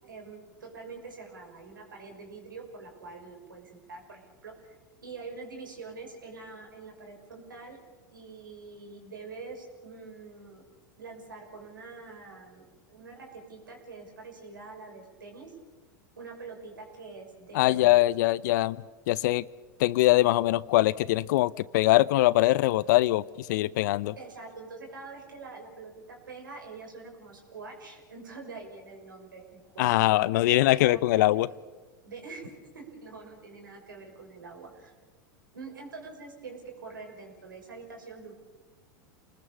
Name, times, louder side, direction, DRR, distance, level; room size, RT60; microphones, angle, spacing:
voice 1, 0.0-4.8 5.0-7.8 8.1-10.6 11.0-15.5 16.2-18.0 24.2-31.0 31.3-31.4 32.0-34.9 35.5-38.3, right 4 dB, 85° right, 2 dB, 6.2 m, -45 dB
voice 2, 17.5-18.8 19.1-19.4 19.8-24.1 29.8-31.5, left 17 dB, 65° left, 20 dB, 0.7 m, -22 dB
29.0 x 20.0 x 7.0 m, 1.3 s
hypercardioid pair, 95°, 11 cm